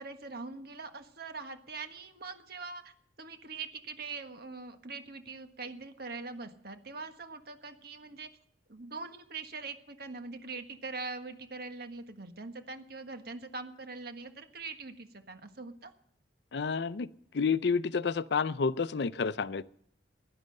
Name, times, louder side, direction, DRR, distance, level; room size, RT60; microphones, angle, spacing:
voice 1, 0.0-2.9 3.2-8.3 8.7-15.9, right 4 dB, 60° right, 1.5 m, -42 dB
voice 2, 16.5-17.1 17.3-19.6, left 5 dB, 65° left, 0.5 m, -29 dB
16.0 x 10.5 x 6.5 m
head